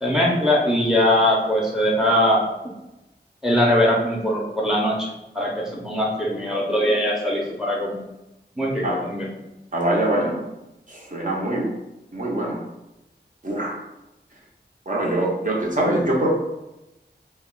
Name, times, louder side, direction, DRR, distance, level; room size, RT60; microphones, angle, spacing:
voice 1, 0.0-2.4 3.4-8.0 8.6-9.3, left 1 dB, ahead, -2 dB, 0.6 m, -21 dB
voice 2, 9.7-10.4 10.9-11.7 12.1-12.7 13.4-13.8 14.9-16.3, right 1 dB, 45° right, -4 dB, 0.6 m, -23 dB
2.3 x 2.1 x 3.7 m, 0.94 s
wide cardioid pair, 55°, 18 cm